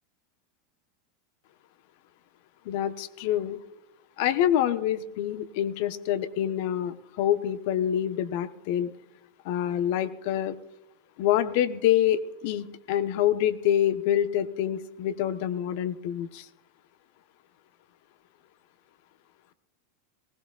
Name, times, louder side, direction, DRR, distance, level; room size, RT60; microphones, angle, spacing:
voice 1, 2.7-3.6 4.2-8.9 9.4-10.6 11.2-16.4, left 11 dB, 60° left, 11 dB, 1.0 m, -26 dB
19.0 x 18.5 x 2.4 m, 0.88 s
hypercardioid pair, 85°, 0 cm